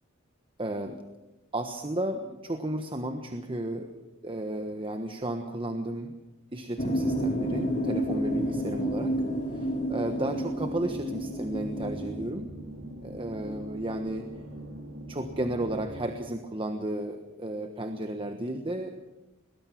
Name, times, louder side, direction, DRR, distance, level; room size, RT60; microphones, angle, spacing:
voice 1, 0.6-1.0 1.5-6.2 6.5-9.2 9.5-12.5 13.0-14.3 15.1-18.9, right 1 dB, 25° right, 6 dB, 1.3 m, -33 dB
sound 1, 6.8-12.3, equal, 40° left, 2.5 m, -30 dB
sound 2, 9.9-16.1, right 1 dB, 80° right, 4.7 m, -42 dB
22.0 x 20.0 x 6.0 m, 1.0 s
head